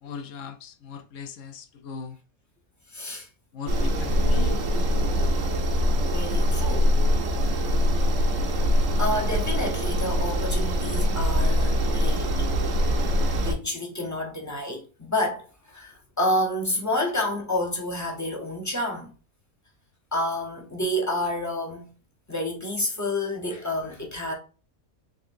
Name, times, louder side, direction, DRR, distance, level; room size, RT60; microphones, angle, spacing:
voice 1, 0.0-2.2 3.5-4.6, left 6 dB, 70° left, 0.9 m, -38 dB
voice 2, 2.9-3.3 6.0-6.9 7.4-7.6 9.0-12.3 13.4-19.1 20.1-21.9 22.3-24.3, left 1 dB, 20° left, 0.6 m, -29 dB
sound 1, 3.7-13.5, equal, 65° right, 1.0 m, -23 dB
3.7 x 3.4 x 2.5 m
omnidirectional pair, 1.5 m